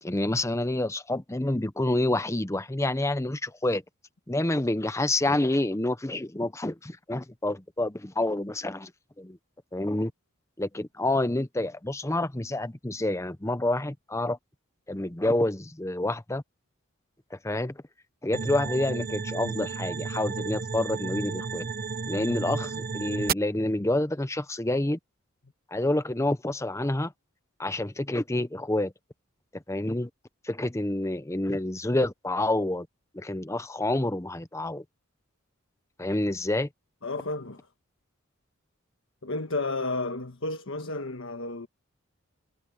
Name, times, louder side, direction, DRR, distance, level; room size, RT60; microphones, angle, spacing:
voice 1, 0.0-3.8 4.3-8.9 9.2-9.4 9.7-10.1 10.6-14.4 14.9-16.4 17.3-17.8 18.2-21.6 22.1-25.0 25.7-27.1 27.6-28.9 29.5-30.1 30.4-32.9 33.1-34.8 36.0-36.7, left 1 dB, 15° left, 0.8 m, -28 dB
sound 1, 18.3-23.3, right 5 dB, 45° right, 0.9 m, -32 dB
voice 2, 37.0-37.7 39.2-41.7, left 2 dB, 65° left, 1.4 m, -32 dB
head